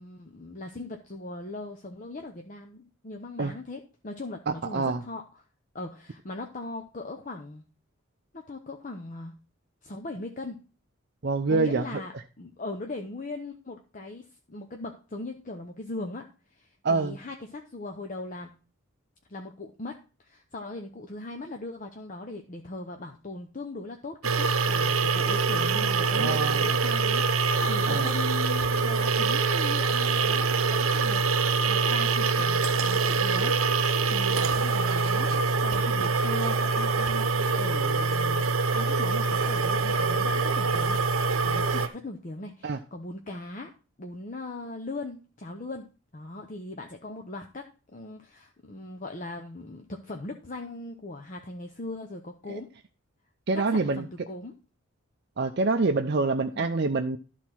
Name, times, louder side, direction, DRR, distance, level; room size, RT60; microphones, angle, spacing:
voice 1, 0.0-5.4 5.7-7.6 8.3-9.3 9.8-10.6 11.5-18.5 19.3-31.2 31.6-43.7 44.0-45.9 46.1-52.7 53.5-54.5 56.5-56.7, left 2 dB, 35° left, 3 dB, 0.8 m, -39 dB
voice 2, 11.2-11.9 16.8-17.2 26.1-26.6 27.9-28.1 42.6-42.8 52.5-52.6 53.5-54.0 55.4-57.2, right 3 dB, 50° right, 6 dB, 0.5 m, -26 dB
sound 1, 24.2-41.9, right 4 dB, 80° right, 0.8 m, -25 dB
12.0 x 4.1 x 6.1 m, 0.35 s
head